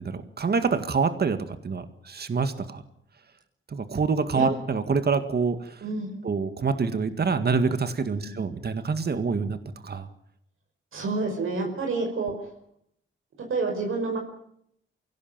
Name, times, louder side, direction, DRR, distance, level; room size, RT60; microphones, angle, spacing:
voice 1, 0.1-2.8 3.7-5.8 6.2-9.6 9.8-10.1, right 5 dB, 50° right, 10 dB, 1.9 m, -26 dB
voice 2, 5.8-6.2 8.1-8.4 10.9-12.3 13.5-14.2, right 3 dB, 80° right, 2 dB, 5.2 m, -28 dB
24.0 x 17.0 x 9.1 m, 0.72 s
cardioid pair, 90°, 21 cm